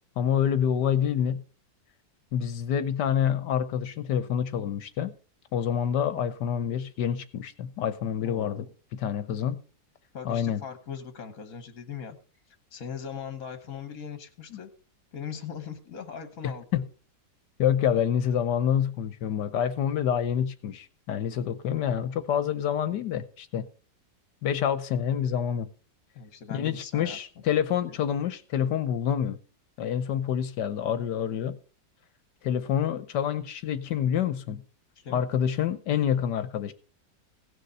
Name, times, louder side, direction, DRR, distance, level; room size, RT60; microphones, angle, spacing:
voice 1, 0.2-1.4 2.3-5.1 5.5-8.7 8.9-9.6 10.2-10.6 16.7-16.8 17.6-23.7 24.4-25.7 26.5-29.4 29.8-31.6 32.4-34.6 35.1-36.7, left 9 dB, 70° left, 1.3 m, -27 dB
voice 2, 8.2-8.7 10.1-12.2 12.5-14.7 15.1-16.8 26.1-27.2 27.9-28.0 34.9-35.2, left 7 dB, 55° left, 1.4 m, -40 dB
16.5 x 6.7 x 5.4 m
omnidirectional pair, 2.0 m